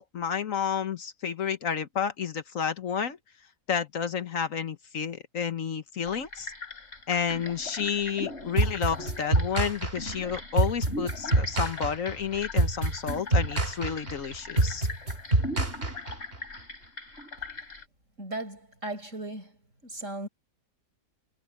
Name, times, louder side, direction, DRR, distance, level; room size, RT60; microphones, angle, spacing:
voice 1, 0.0-3.2 3.7-6.5 7.1-14.9, left 7 dB, 65° left, 1.5 m, -30 dB
sound 1, 6.1-17.8, left 2 dB, 50° left, 4.4 m, -41 dB
sound 2, 8.6-16.4, right 2 dB, 40° right, 2.9 m, -26 dB
voice 2, 18.2-19.6 19.8-20.3, right 2 dB, 60° right, 7.1 m, -37 dB
omnidirectional pair, 1.5 m